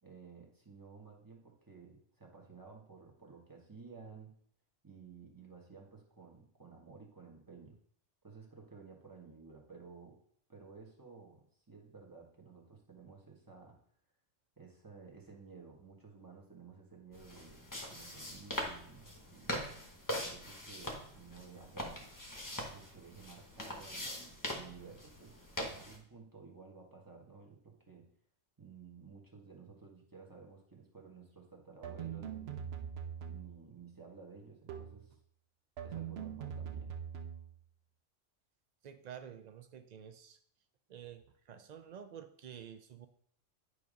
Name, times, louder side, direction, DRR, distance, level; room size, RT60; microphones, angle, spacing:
voice 1, 0.0-4.3 4.8-7.8 8.2-10.2 10.5-13.8 14.6-19.6 20.2-22.0 22.5-24.1 24.4-28.0 28.6-32.7 33.3-35.2 35.8-36.9, right 5 dB, 15° right, -1 dB, 1.3 m, -54 dB
sound 1, 17.1-26.0, equal, 15° left, 1.0 m, -42 dB
sound 2, 31.8-33.6 34.7-35.1 35.8-37.6, right 8 dB, 60° right, 0.8 m, -42 dB
voice 2, 38.8-40.4 40.9-43.1, right 8 dB, 85° right, 8 dB, 0.3 m, -50 dB
9.3 x 3.3 x 5.1 m, 0.63 s
omnidirectional pair, 1.3 m